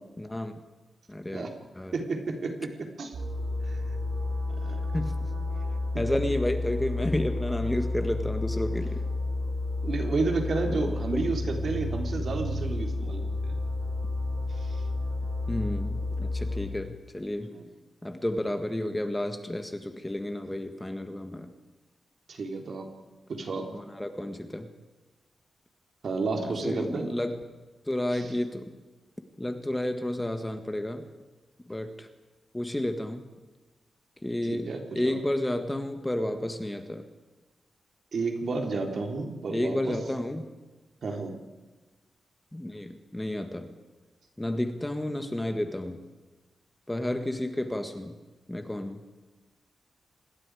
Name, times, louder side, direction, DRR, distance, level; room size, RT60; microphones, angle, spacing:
voice 1, 0.2-0.6 1.1-1.5 1.7-1.9 4.9-5.2 6.0-9.0 10.6-11.2 15.5-17.5 18.0-21.5 23.7-24.7 26.4-27.4 27.9-28.8 29.4-31.1 31.7-32.1 32.5-33.3 34.2-37.1 39.5-40.5 42.5-43.7 44.4-46.0 46.9-48.2 48.5-49.0, left 1 dB, 10° left, 7 dB, 1.6 m, -31 dB
voice 2, 1.9-3.2 3.6-3.8 4.6-5.0 9.8-13.6 14.6-14.8 17.5-17.6 22.3-22.9 23.3-23.7 26.0-27.1 34.5-35.2 38.1-40.0 41.0-41.4, right 3 dB, 60° right, 3 dB, 3.8 m, -31 dB
sound 1, 3.1-16.6, left 2 dB, 80° right, 7.5 m, -31 dB
27.5 x 21.0 x 5.0 m, 1.2 s
wide cardioid pair, 130°, 0 cm